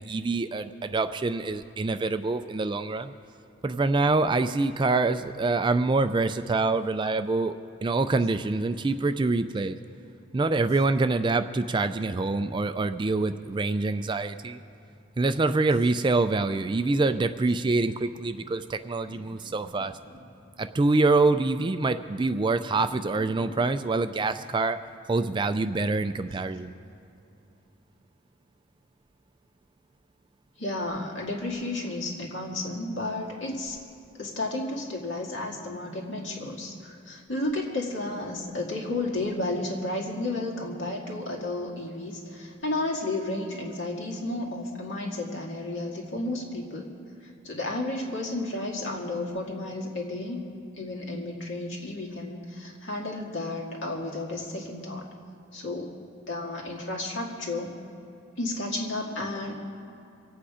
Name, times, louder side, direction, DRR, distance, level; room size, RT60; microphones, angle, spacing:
voice 1, 0.0-3.1 3.6-7.5 7.8-9.8 10.3-14.6 15.2-19.9 20.6-24.8 25.1-26.7, right 3 dB, 25° right, 10 dB, 0.3 m, -25 dB
voice 2, 19.1-20.2 22.9-23.5 30.6-33.8 34.2-46.9 47.2-50.4 50.8-55.1 55.5-55.9 56.3-57.7 58.4-59.5, left 2 dB, 60° left, -1 dB, 2.3 m, -32 dB
25.0 x 8.5 x 5.0 m, 2.7 s
head